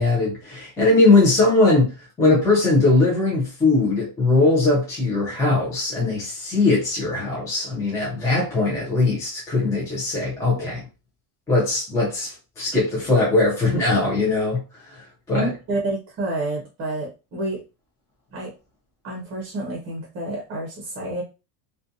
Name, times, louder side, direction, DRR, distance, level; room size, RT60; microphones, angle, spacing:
voice 1, 0.0-10.8 11.5-15.5, left 3 dB, 5° left, 0.4 m, -20 dB
voice 2, 15.3-17.6 18.3-18.5 19.0-21.2, right 2 dB, 30° right, 0.7 m, -29 dB
2.5 x 2.3 x 2.6 m
cardioid pair, 170°, 46 cm